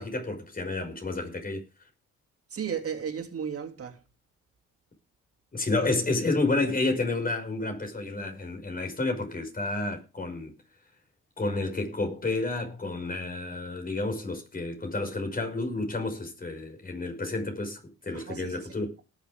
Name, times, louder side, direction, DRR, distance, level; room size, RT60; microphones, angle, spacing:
voice 1, 0.0-1.6 5.5-10.5 11.4-18.9, left 2 dB, 30° left, 5.5 m, -30 dB
voice 2, 2.5-4.0 18.1-18.7, right 7 dB, 50° right, 3.0 m, -34 dB
18.5 x 7.2 x 5.1 m
cardioid pair, 90°, 30 cm